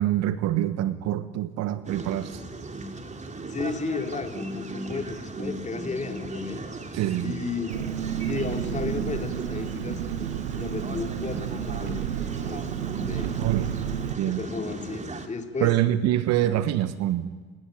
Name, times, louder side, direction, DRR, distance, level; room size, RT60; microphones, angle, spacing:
voice 1, 0.0-2.4 6.9-7.4 13.4-13.7 14.2-14.4 15.6-17.3, right 13 dB, 50° right, 14 dB, 1.4 m, -25 dB
sound 1, 1.8-15.3, right 2 dB, 20° right, 3.2 m, -37 dB
voice 2, 3.5-6.7 7.2-7.8 8.2-10.0 10.5-12.0 12.4-12.7 13.0-13.4 14.2-15.8, left 4 dB, 20° left, 5 dB, 3.3 m, -33 dB
Engine, 7.7-14.1, right 10 dB, 75° right, 1.6 m, -31 dB
29.0 x 19.0 x 9.3 m, 1.4 s
hypercardioid pair, 70°, 34 cm